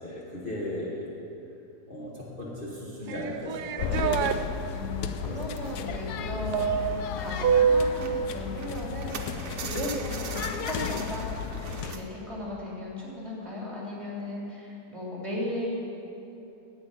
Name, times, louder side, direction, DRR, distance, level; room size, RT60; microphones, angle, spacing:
voice 1, 0.0-1.0 1.9-4.2 5.2-5.4, left 1 dB, 35° left, -6 dB, 1.5 m, -36 dB
sound 1, 3.1-4.4 6.5-8.2, right 7 dB, 80° right, 1.1 m, -25 dB
sound 2, 3.8-11.9, left 7 dB, 85° left, 1.1 m, -34 dB
sound 3, 4.6-4.8 5.4-6.6 6.9-12.0, right 5 dB, 55° right, 1.1 m, -41 dB
voice 2, 4.7-11.2 11.8-15.7, left 1 dB, 20° right, -5 dB, 2.9 m, -36 dB
9.7 x 8.2 x 9.2 m, 2.9 s
omnidirectional pair, 1.7 m